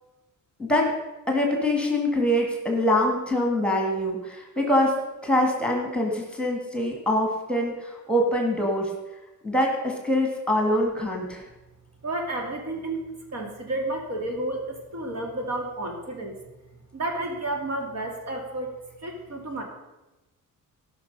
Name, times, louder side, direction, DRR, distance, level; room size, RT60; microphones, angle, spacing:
voice 1, 0.6-0.9 1.3-8.9 9.4-11.4, left 1 dB, 5° left, 1 dB, 2.1 m, -24 dB
voice 2, 12.0-16.4 16.9-18.7 19.0-19.6, right 2 dB, 50° right, 2 dB, 2.3 m, -31 dB
17.0 x 6.1 x 5.5 m, 1.0 s
cardioid pair, 150°, 32 cm